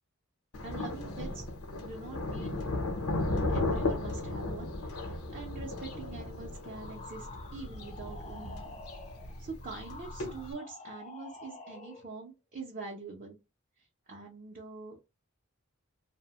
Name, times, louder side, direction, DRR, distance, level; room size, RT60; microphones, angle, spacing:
Thunder, 0.5-10.5, left 2 dB, 85° left, 0.7 m, -35 dB
voice 1, 0.6-1.5 1.8-2.7 3.5-8.8 9.4-13.4 13.8-15.0, right 3 dB, 40° right, -1 dB, 0.5 m, -44 dB
sound 1, 6.7-12.1, left 3 dB, 30° left, 0.4 m, -49 dB
2.7 x 2.1 x 2.8 m, 0.26 s
head